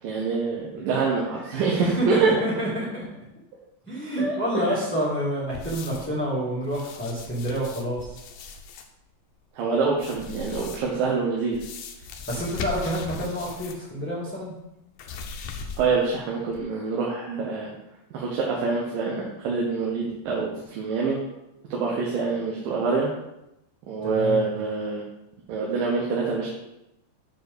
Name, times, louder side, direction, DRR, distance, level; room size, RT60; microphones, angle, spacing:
voice 1, 0.0-2.4 4.2-4.4 9.6-11.6 15.8-17.7 18.1-21.2 21.7-23.1 23.9-25.0 25.5-26.5, right 4 dB, 80° right, -2 dB, 2.8 m, -25 dB
voice 2, 1.9-3.0 3.8-8.2 12.0-14.5 24.0-24.4, equal, 5° left, -7 dB, 1.3 m, -28 dB
sound 1, 5.5-6.2 6.6-8.9 9.9-11.0 11.5-13.9 14.2-14.3 15.0-16.1 16.5-16.6, left 4 dB, 75° left, 1.5 m, -38 dB
7.3 x 4.6 x 6.7 m, 0.87 s
omnidirectional pair, 3.9 m